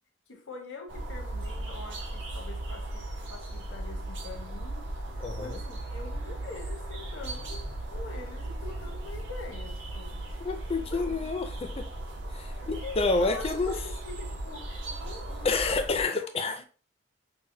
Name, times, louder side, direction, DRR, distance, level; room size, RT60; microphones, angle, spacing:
voice 1, 0.3-4.9 5.4-10.3 10.8-11.3 12.6-16.1 16.5-16.6, left 3 dB, 80° left, 1.0 m, -44 dB
sound 1, 0.9-16.0, right 1 dB, 70° right, 0.9 m, -37 dB
voice 2, 5.2-5.6 10.4-11.9 12.3-13.8 15.4-16.6, left 3 dB, 30° left, 0.5 m, -29 dB
5.7 x 2.2 x 2.6 m
head